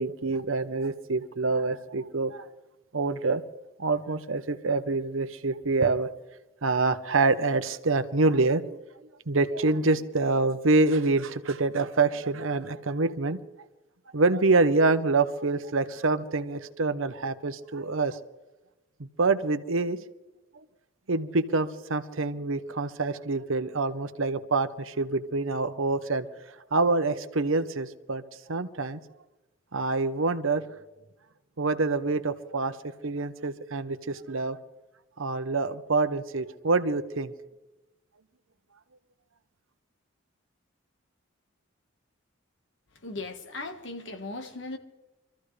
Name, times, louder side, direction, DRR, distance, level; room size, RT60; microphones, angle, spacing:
voice 1, 0.0-2.5 2.9-3.4 3.8-6.1 6.6-8.8 9.3-13.4 14.1-18.2 19.0-20.0 20.5-20.6 21.1-26.3 26.7-28.2 28.5-29.0 29.7-30.6 31.6-34.6 35.2-37.3, right 3 dB, 75° right, 0.9 m, -26 dB
voice 2, 43.0-44.8, left 2 dB, 60° left, 1.6 m, -37 dB
25.0 x 14.0 x 3.3 m
head